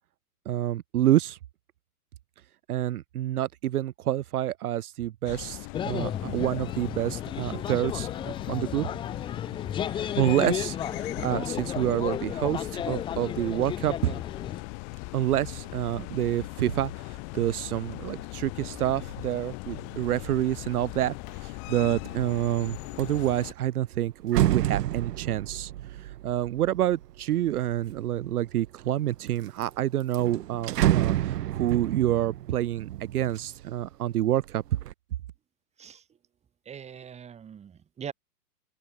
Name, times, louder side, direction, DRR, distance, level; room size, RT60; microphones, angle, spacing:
voice 1, 0.5-1.4 2.7-8.1 8.5-8.9 9.9-14.2 15.1-25.7 26.0-34.6, right 13 dB, 70° right, 1.1 m, -28 dB
sound 1, 5.3-23.5, left 38 dB, 30° left, 2.4 m, -39 dB
sound 2, 5.7-14.6, left 9 dB, 10° left, 0.8 m, -33 dB
sound 3, 21.9-22.3 22.6-28.0 28.6-29.3 29.6-29.7 30.0-33.9 34.3-34.9, right 13 dB, 90° right, 0.7 m, -29 dB
voice 2, 36.7-38.1, right 8 dB, 15° right, 3.3 m, -41 dB
open air
hypercardioid pair, 150°, 46 cm